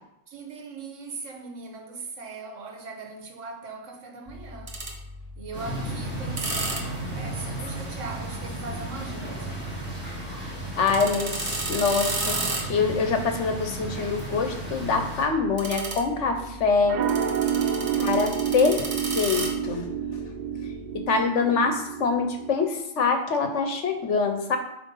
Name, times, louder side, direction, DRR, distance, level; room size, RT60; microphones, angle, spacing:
voice 1, 0.3-4.8 5.4-9.5 17.8-18.9, right 3 dB, 85° right, 1.4 m, -40 dB
sound 1, 4.3-21.0, right 2 dB, 30° right, 1.0 m, -35 dB
sound 2, 5.5-15.2, right 2 dB, 10° left, 3.0 m, -35 dB
voice 2, 10.8-12.4 12.6-17.0 18.0-18.8 19.1-19.9 20.9-24.6, left 4 dB, 70° left, 1.3 m, -25 dB
sound 3, 16.2-22.6, right 8 dB, 60° right, 0.4 m, -29 dB
9.0 x 3.3 x 5.6 m
omnidirectional pair, 1.3 m